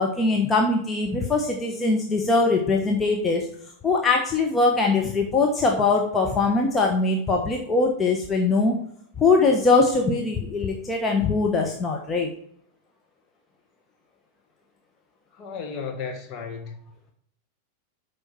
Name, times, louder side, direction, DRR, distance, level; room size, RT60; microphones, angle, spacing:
voice 1, 0.0-3.5 3.8-8.8 9.2-12.3, left 3 dB, 20° left, 1.3 m, -22 dB
voice 2, 15.3-16.8, left 5 dB, 35° left, 1.8 m, -34 dB
12.0 x 5.1 x 4.4 m
figure-of-eight pair, 90°, 0 cm